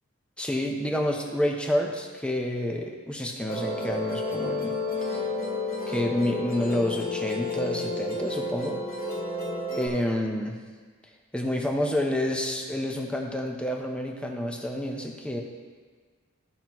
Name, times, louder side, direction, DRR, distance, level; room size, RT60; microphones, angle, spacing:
voice 1, 0.4-4.8 5.1-5.2 5.9-8.8 9.7-10.5 11.3-15.4, left 1 dB, 5° left, 0 dB, 0.8 m, -29 dB
Musical instrument, 3.5-9.9, left 2 dB, 45° left, 1.9 m, -31 dB
14.5 x 6.0 x 3.0 m, 1.5 s
head